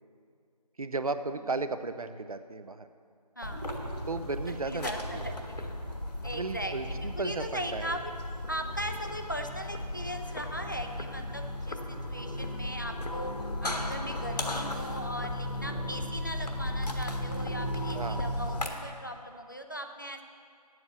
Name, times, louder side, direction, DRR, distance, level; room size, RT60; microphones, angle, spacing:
voice 1, 0.8-2.9 4.1-5.2 6.3-8.0 17.9-18.2, right 3 dB, 60° right, 11 dB, 0.6 m, -34 dB
sound 1, 3.4-18.7, left 1 dB, 80° left, 1.4 m, -35 dB
voice 2, 3.4-3.7 4.6-5.7 6.2-8.1 8.5-13.3 13.6-20.2, equal, 30° left, 5 dB, 0.5 m, -39 dB
sound 2, 3.4-6.3 6.8-6.9 7.3-8.4 8.9-9.1 9.5-10.1 10.5-19.3, right 1 dB, 35° right, 2.2 m, -47 dB
9.6 x 7.8 x 7.1 m, 2.3 s
figure-of-eight pair, 180°, 21 cm